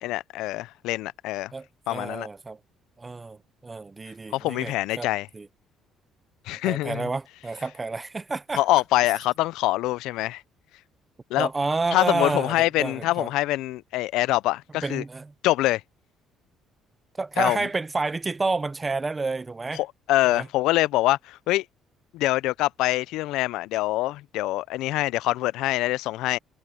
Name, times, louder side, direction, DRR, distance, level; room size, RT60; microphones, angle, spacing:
voice 1, 0.0-1.5 1.9-2.3 4.3-5.3 6.5-7.1 8.6-10.4 11.3-11.5 11.9-15.0 15.4-15.8 17.4-17.7 19.7-21.6 22.1-26.4, left 17 dB, 85° left, 0.3 m, -25 dB
voice 2, 1.5-2.6 3.0-5.1 5.3-5.5 6.6-8.6 11.4-13.3 14.8-15.3 17.2-19.8 20.2-20.5, right 3 dB, 20° right, 0.6 m, -29 dB
cardioid pair, 125°, 0 cm